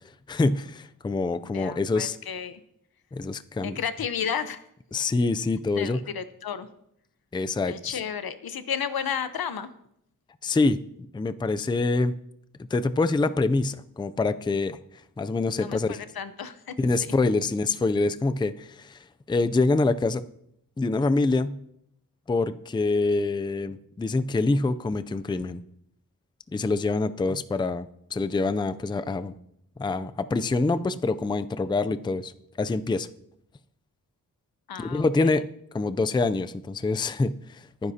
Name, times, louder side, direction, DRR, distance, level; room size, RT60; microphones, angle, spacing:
voice 1, 0.3-2.2 3.1-3.8 4.9-6.0 7.3-8.0 10.4-10.8 11.1-12.1 12.7-14.8 15.2-16.0 16.8-20.2 20.8-21.6 22.3-25.6 26.5-29.3 29.8-32.3 32.6-33.1 34.8-35.5 35.7-37.9, left 3 dB, 15° left, 12 dB, 0.4 m, -25 dB
voice 2, 1.4-2.6 3.6-4.7 5.7-6.7 7.7-9.7 15.5-16.7 17.0-17.1 34.7-35.4, left 7 dB, 85° left, 12 dB, 0.9 m, -33 dB
21.0 x 9.8 x 2.8 m, 0.76 s
wide cardioid pair, 125°, 36 cm